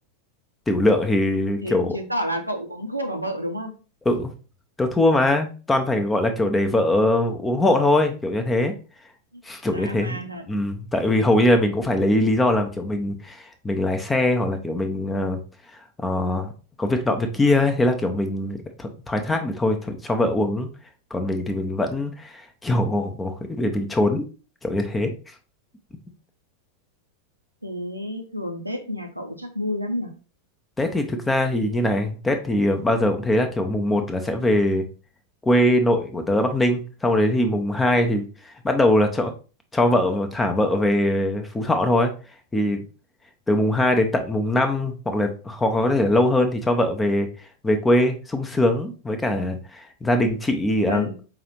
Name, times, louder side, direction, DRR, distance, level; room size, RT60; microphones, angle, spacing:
voice 1, 0.7-2.0 4.1-4.3 4.8-8.7 9.4-10.2 10.5-15.4 16.0-16.5 16.8-20.7 21.1-24.3 24.6-25.1 30.8-34.8 35.4-39.3 39.7-42.1 42.5-42.8 43.5-47.3 47.6-51.1, left 1 dB, 10° left, 6 dB, 0.6 m, -22 dB
voice 2, 1.6-3.7 9.3-9.4 9.7-10.5 27.6-30.1 50.8-51.2, equal, 85° right, 4 dB, 0.6 m, -30 dB
4.9 x 2.4 x 2.9 m, 0.35 s
figure-of-eight pair, 90°, 0 cm